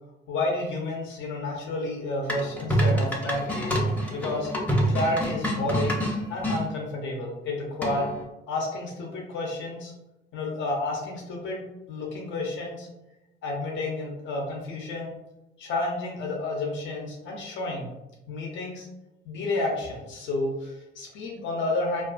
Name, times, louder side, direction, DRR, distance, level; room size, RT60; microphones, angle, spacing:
voice 1, 0.3-4.5 4.9-8.1 8.5-9.9 10.3-11.6 11.9-12.9 13.4-15.2 15.6-17.9 18.3-18.9 19.3-22.0, left 2 dB, 70° left, -1 dB, 0.6 m, -30 dB
sound 1, 2.3-6.6 7.8-8.2, equal, 10° left, 0.5 m, -26 dB
2.3 x 2.3 x 2.4 m, 0.96 s
cardioid pair, 90°, 20 cm